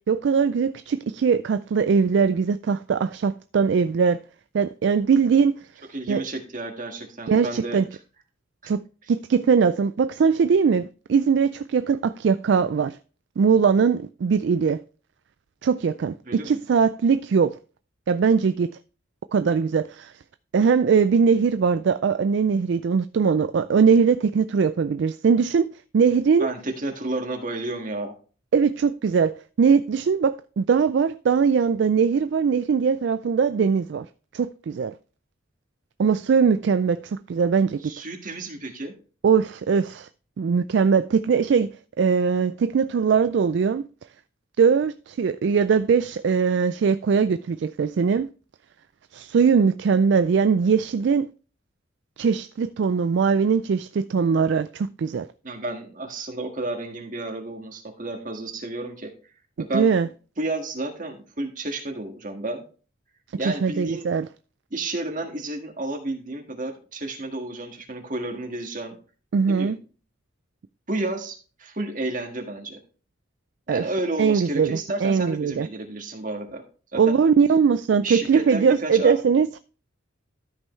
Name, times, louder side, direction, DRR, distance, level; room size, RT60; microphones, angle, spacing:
voice 1, 0.1-4.2 4.5-5.5 6.1-6.2 7.3-7.8 8.7-8.8 9.1-13.0 13.4-14.8 15.6-17.6 18.1-18.8 19.3-20.1 20.5-25.7 25.9-26.5 28.5-34.1 34.3-34.9 36.0-37.8 39.2-40.1 40.4-41.7 42.0-43.9 44.6-48.3 49.1-51.3 52.2-55.3 59.7-60.1 63.4-64.3 69.3-69.8 73.7-73.9 74.2-75.7 77.0-79.5, right 6 dB, 60° right, 0.3 m, -21 dB
voice 2, 5.9-7.8 16.2-16.6 26.4-28.1 37.8-38.9 55.4-59.1 59.6-59.9 60.4-62.6 63.4-64.1 64.7-69.0 69.5-69.7 70.9-72.8 73.7-76.6 76.9-77.1 78.0-79.2, right 2 dB, 40° right, 1.7 m, -31 dB
13.0 x 5.4 x 3.1 m
head